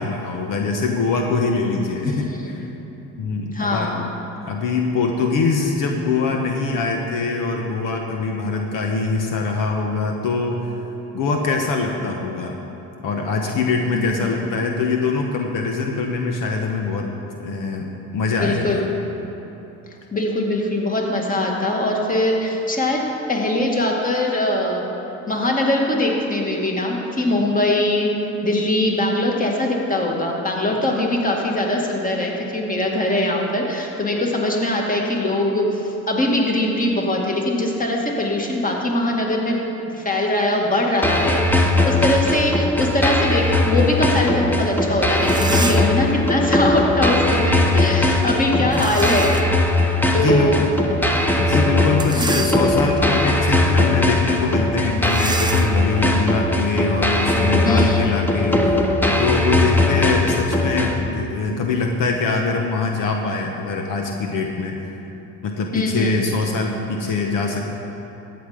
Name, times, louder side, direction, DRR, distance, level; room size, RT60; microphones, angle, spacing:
voice 1, 0.0-2.5 3.2-3.9 4.5-10.7 11.1-12.6 13.0-17.1 17.4-18.8 50.1-50.8 51.3-58.7 59.2-64.9 65.4-67.6, left 4 dB, 65° left, 2 dB, 1.2 m, -23 dB
voice 2, 3.5-4.0 13.9-14.3 18.4-18.9 20.1-24.9 25.3-28.1 28.4-49.4 50.1-50.6 52.1-52.6 57.6-58.0 65.7-66.2, left 1 dB, 25° left, 0 dB, 2.1 m, -22 dB
sound 1, 41.0-61.0, left 2 dB, 5° left, 1.1 m, -19 dB
sound 2, 44.8-44.9 45.2-46.0 48.7-49.6 50.1-50.2 51.9-53.0 53.6-53.8 54.0-54.2 55.0-57.5, right 3 dB, 15° right, 0.5 m, -30 dB
13.5 x 8.1 x 5.1 m, 3.0 s
supercardioid pair, 85°, 34 cm